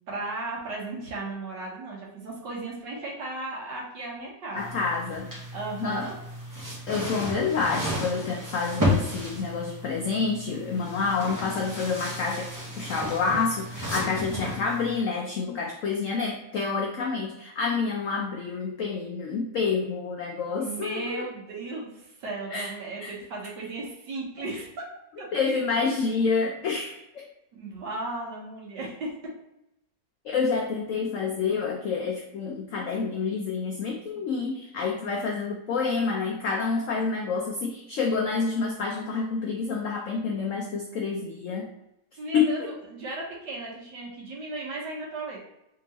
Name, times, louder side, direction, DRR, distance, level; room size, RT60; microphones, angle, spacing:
voice 1, 0.1-4.9 5.5-6.2 14.1-14.5 20.6-24.8 25.2-25.3 27.5-29.1 42.2-45.4, right 2 dB, 75° right, -3 dB, 1.7 m, -36 dB
voice 2, 4.5-5.3 5.8-6.1 6.9-12.5 12.8-21.3 22.5-22.7 23.0-23.1 25.3-27.3 30.2-41.7 42.3-42.7, left 5 dB, 80° left, 1 dB, 0.7 m, -28 dB
sound 1, 4.6-15.0, left 1 dB, 20° right, 0.6 m, -33 dB
3.7 x 3.6 x 2.9 m, 0.86 s
omnidirectional pair, 1.9 m